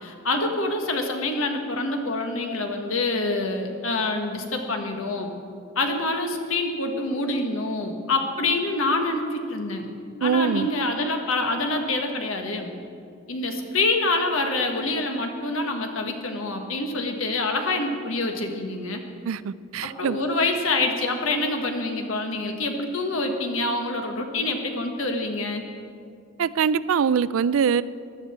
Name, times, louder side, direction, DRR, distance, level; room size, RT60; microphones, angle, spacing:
voice 1, 0.0-5.3 5.7-9.9 10.2-12.7 13.3-19.0 19.8-25.6, left 2 dB, 80° left, 4 dB, 1.5 m, -26 dB
voice 2, 10.2-10.7 19.3-20.2 26.4-27.8, right 7 dB, 75° right, 17 dB, 0.4 m, -23 dB
16.0 x 11.5 x 4.4 m, 2.4 s
head